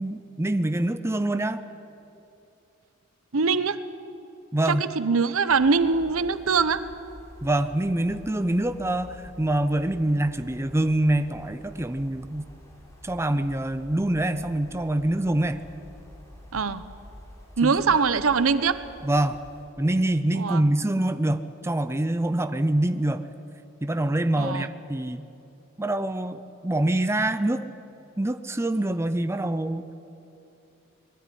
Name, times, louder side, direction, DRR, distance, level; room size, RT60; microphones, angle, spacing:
voice 1, 0.0-1.6 4.5-4.8 7.4-12.5 13.0-15.6 17.6-17.7 19.0-19.4 19.8-23.2 23.8-25.2 25.8-27.6 28.2-29.8, right 1 dB, 15° right, 11 dB, 0.5 m, -25 dB
voice 2, 3.3-3.8 4.7-6.8 16.5-16.8 17.6-18.8 20.3-20.6 24.4-24.7, right 5 dB, 85° right, 14 dB, 0.8 m, -22 dB
sound 1, 5.5-19.7, equal, 15° left, 3.3 m, -48 dB
20.5 x 13.0 x 9.9 m, 2.8 s
head